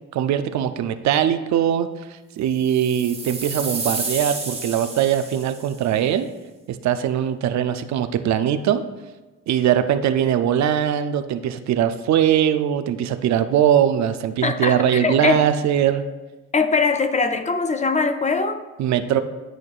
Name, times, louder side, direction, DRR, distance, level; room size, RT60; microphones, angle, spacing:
voice 1, 0.1-1.9 2.4-6.3 6.7-8.8 9.5-16.0 18.8-19.2, right 10 dB, 65° right, 10 dB, 0.5 m, -21 dB
sound 1, 2.6-5.8, right 3 dB, 20° right, 1.3 m, -31 dB
voice 2, 14.4-15.4 16.5-18.6, left 4 dB, 25° left, 9 dB, 0.4 m, -21 dB
11.0 x 4.5 x 2.4 m, 1.2 s
cardioid pair, 90°, 30 cm